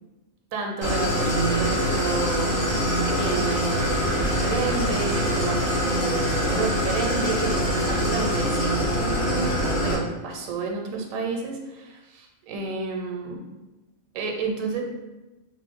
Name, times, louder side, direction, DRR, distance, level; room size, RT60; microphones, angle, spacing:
voice 1, 0.5-13.4 14.1-14.8, right 4 dB, 90° right, 2 dB, 1.0 m, -31 dB
Idling, 0.8-9.9, equal, 45° left, 0.9 m, -24 dB
3.1 x 2.0 x 3.5 m, 1.1 s
omnidirectional pair, 1.4 m